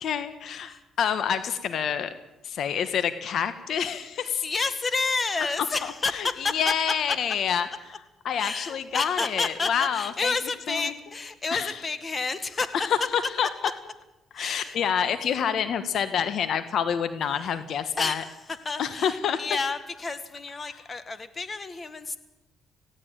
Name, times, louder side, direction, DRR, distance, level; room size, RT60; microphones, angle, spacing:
voice 1, 0.0-2.1 2.4-4.4 5.8-7.7 8.2-10.3 10.7-10.9 11.5-11.7 12.7-13.5 14.3-18.2 18.8-19.4, left 8 dB, 70° left, 11 dB, 1.5 m, -27 dB
voice 2, 4.2-6.7 8.4-12.7 14.3-14.8 18.0-22.2, left 4 dB, 35° left, 11 dB, 1.9 m, -30 dB
19.0 x 16.5 x 9.1 m, 0.97 s
cardioid pair, 90°, 0 cm